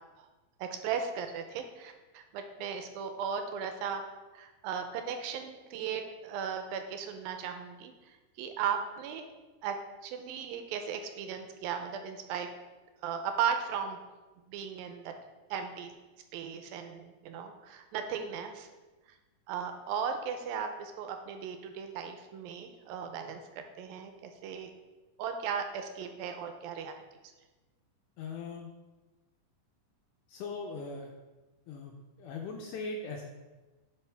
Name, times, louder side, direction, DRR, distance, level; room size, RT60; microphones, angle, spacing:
voice 1, 0.6-4.0 4.3-9.3 9.6-9.8 10.0-12.5 13.0-14.0 14.5-15.1 15.5-15.9 16.3-18.7 19.5-24.7 25.2-26.9, right 7 dB, 85° right, 6 dB, 2.4 m, -36 dB
voice 2, 28.2-28.7 30.3-31.1 31.7-33.2, left 3 dB, 80° left, 1 dB, 2.0 m, -40 dB
11.0 x 4.9 x 3.4 m, 1.2 s
omnidirectional pair, 4.1 m